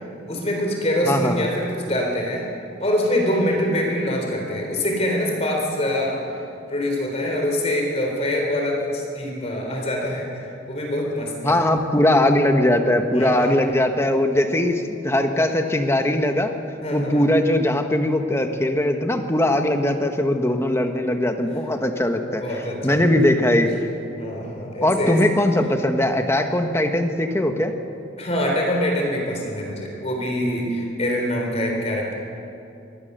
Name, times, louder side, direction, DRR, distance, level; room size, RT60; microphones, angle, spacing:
voice 1, 0.3-2.4 2.8-6.2 6.7-11.6 13.1-13.7 16.8-17.2 22.4-23.1 24.2-25.2 28.2-32.1, left 1 dB, 35° left, 0 dB, 3.7 m, -24 dB
voice 2, 1.1-1.5 11.4-16.5 16.9-22.4 22.8-23.7 24.8-27.7, left 1 dB, 15° left, 5 dB, 1.4 m, -20 dB
23.5 x 18.0 x 6.8 m, 2.7 s
head